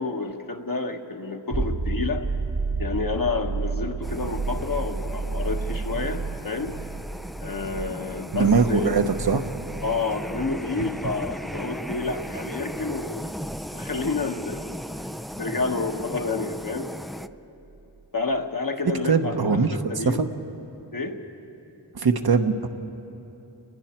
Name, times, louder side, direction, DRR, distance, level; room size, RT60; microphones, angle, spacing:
voice 1, 0.0-2.3 2.8-6.8 7.4-9.0 9.8-13.4 13.7-14.7 15.3-16.9 18.1-20.2 20.9-21.2, left 3 dB, 55° left, 4 dB, 1.5 m, -29 dB
sound 1, 1.5-15.0 17.7-17.8, right 4 dB, 50° right, 1.3 m, -32 dB
sound 2, 4.0-17.3, equal, ahead, 0.3 m, -37 dB
voice 2, 8.3-9.4 19.0-19.8 20.1-20.3 21.9-22.7, right 5 dB, 65° right, 7 dB, 1.1 m, -21 dB
29.5 x 20.0 x 4.5 m, 3.0 s
wide cardioid pair, 60°, 40 cm